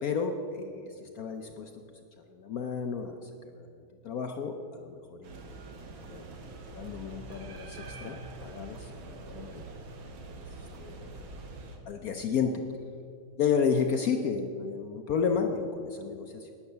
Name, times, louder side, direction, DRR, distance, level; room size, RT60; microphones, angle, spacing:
voice 1, 0.0-1.7 2.3-5.4 6.1-6.2 6.7-9.6 10.3-10.4 10.8-11.2 11.9-12.5 13.4-16.5, left 6 dB, 65° left, 5 dB, 0.9 m, -32 dB
sound 1, 5.2-11.8, right 3 dB, 70° right, 2.1 m, -44 dB
11.5 x 9.8 x 6.8 m, 2.5 s
omnidirectional pair, 2.3 m